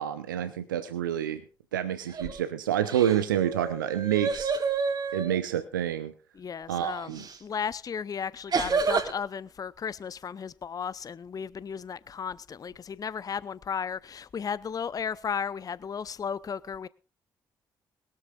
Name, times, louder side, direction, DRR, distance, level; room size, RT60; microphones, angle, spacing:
voice 1, 0.0-1.4 1.7-4.5 5.1-6.1 6.7-7.2, right 10 dB, 80° right, 0.8 m, -28 dB
sound 1, 2.0-2.4 2.8-5.4 7.2-7.4 8.5-9.1, right 4 dB, 40° right, 2.9 m, -29 dB
voice 2, 6.4-7.1 7.4-16.9, left 7 dB, 35° left, 0.7 m, -34 dB
21.5 x 13.0 x 2.4 m
figure-of-eight pair, 40°, 11 cm